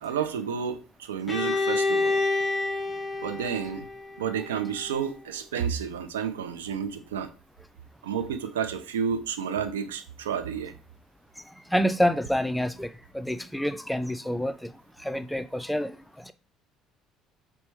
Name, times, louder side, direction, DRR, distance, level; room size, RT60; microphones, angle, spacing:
voice 1, 0.0-2.2 3.2-3.9 4.2-7.3 8.0-10.7, right 7 dB, 85° right, 0.3 m, -31 dB
Bowed string instrument, 1.3-5.1, left 3 dB, 25° left, 0.8 m, -28 dB
voice 2, 11.7-12.9 13.1-14.7 15.0-15.9 16.3-16.4, equal, 5° left, 0.3 m, -27 dB
4.2 x 2.1 x 3.3 m
hypercardioid pair, 65°, 0 cm